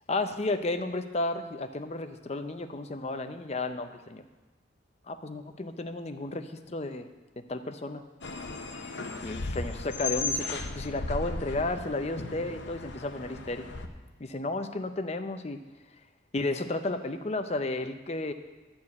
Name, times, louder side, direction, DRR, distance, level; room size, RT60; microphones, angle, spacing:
voice 1, 0.1-4.2 5.1-7.1 7.4-8.0 9.2-13.7 14.2-15.6 16.3-18.3, left 2 dB, 30° left, 8 dB, 0.5 m, -33 dB
sound 1, 8.2-13.9, left 3 dB, 65° left, 0.8 m, -36 dB
12.0 x 4.5 x 8.4 m, 1.2 s
head